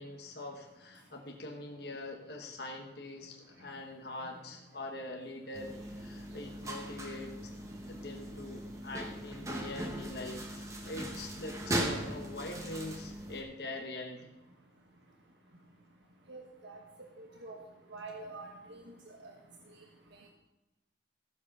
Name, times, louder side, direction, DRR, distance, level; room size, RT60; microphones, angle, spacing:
voice 1, 0.0-7.5 7.9-14.3, left 2 dB, 60° left, 1 dB, 1.2 m, -43 dB
sound 1, 5.5-13.4, right 1 dB, 15° right, 1.2 m, -39 dB
voice 2, 16.3-16.8 17.2-17.6 17.9-18.8, right 3 dB, 75° right, 0 dB, 1.4 m, -46 dB
14.5 x 7.5 x 5.4 m, 1.0 s
head